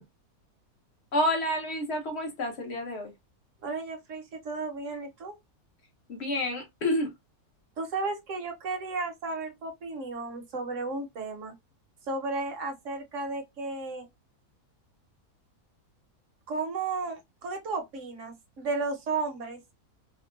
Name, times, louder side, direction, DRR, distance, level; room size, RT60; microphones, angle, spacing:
voice 1, 1.1-3.1 6.1-7.1, left 1 dB, 55° left, 0.9 m, -29 dB
voice 2, 3.6-5.3 7.8-11.5 12.1-14.1 16.5-19.6, right 3 dB, 60° right, 0.9 m, -34 dB
3.6 x 2.1 x 2.3 m
omnidirectional pair, 1.6 m